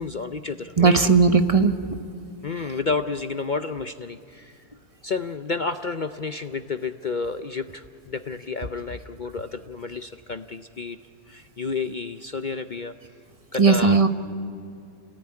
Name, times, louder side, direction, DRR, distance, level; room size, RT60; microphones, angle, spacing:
voice 1, 0.0-1.1 2.4-4.6 5.0-11.0 11.3-12.9 13.5-14.0, left 4 dB, 60° left, 9 dB, 0.5 m, -30 dB
voice 2, 0.8-1.7 13.6-14.1, right 4 dB, 25° right, 8 dB, 0.9 m, -17 dB
28.5 x 18.0 x 9.7 m, 2.5 s
omnidirectional pair, 1.7 m